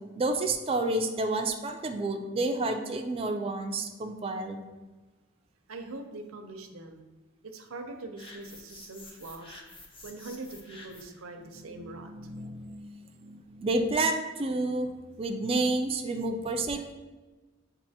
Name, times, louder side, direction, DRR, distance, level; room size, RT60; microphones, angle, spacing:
voice 1, 0.2-4.6 11.5-12.9 13.2-14.9 15.2-16.9, right 2 dB, 25° right, 4 dB, 0.4 m, -30 dB
voice 2, 5.7-7.1 7.4-9.6 10.0-12.1, right 2 dB, 85° right, 5 dB, 0.6 m, -42 dB
sound 1, 8.2-11.2, left 2 dB, 25° left, 0.6 m, -49 dB
7.2 x 2.6 x 2.8 m, 1.2 s
head